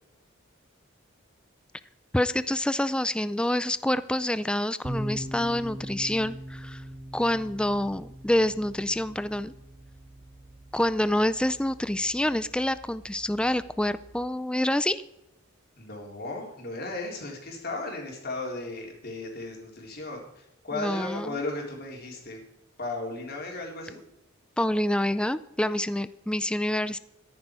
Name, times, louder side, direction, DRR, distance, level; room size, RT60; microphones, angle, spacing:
voice 1, 2.1-6.8 7.1-9.5 10.7-15.0 20.7-21.4 24.6-27.0, left 1 dB, 5° left, 14 dB, 0.4 m, -27 dB
sound 1, 4.8-14.3, right 1 dB, 35° right, 4.3 m, -41 dB
voice 2, 15.8-22.4 22.8-24.0, left 2 dB, 50° left, 0 dB, 4.0 m, -35 dB
14.0 x 10.5 x 4.8 m, 0.86 s
head